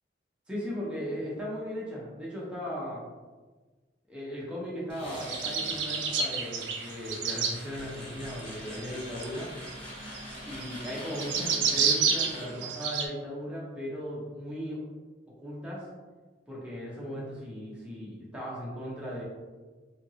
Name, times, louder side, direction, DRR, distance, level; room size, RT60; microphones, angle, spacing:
voice 1, 0.5-3.0 4.1-9.5 10.4-14.8 15.4-15.9 16.5-19.2, equal, 5° right, -6 dB, 0.6 m, -37 dB
sound 1, 4.9-12.5, left 1 dB, 30° left, 0.7 m, -44 dB
sound 2, 5.2-7.6 8.3-13.1, right 6 dB, 70° right, 0.4 m, -29 dB
2.8 x 2.5 x 2.7 m, 1.3 s
head